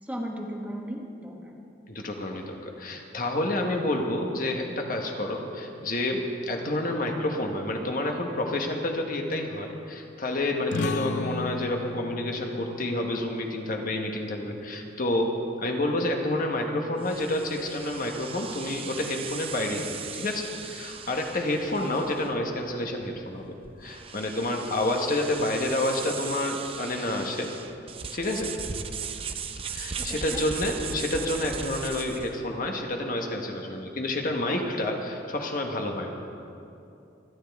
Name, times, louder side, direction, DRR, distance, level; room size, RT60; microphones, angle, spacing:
voice 1, 0.0-1.6 30.0-30.4, equal, 10° right, 0 dB, 1.2 m, -36 dB
voice 2, 1.9-15.3 15.6-23.5 23.8-27.5 28.1-28.5 29.7-36.3, left 1 dB, 45° left, 2 dB, 1.2 m, -29 dB
sound 1, 10.7-15.9, left 3 dB, 70° left, 0.4 m, -37 dB
sound 2, 17.0-32.4, right 6 dB, 30° right, 0.6 m, -38 dB
25.5 x 10.0 x 3.5 m, 2.7 s
head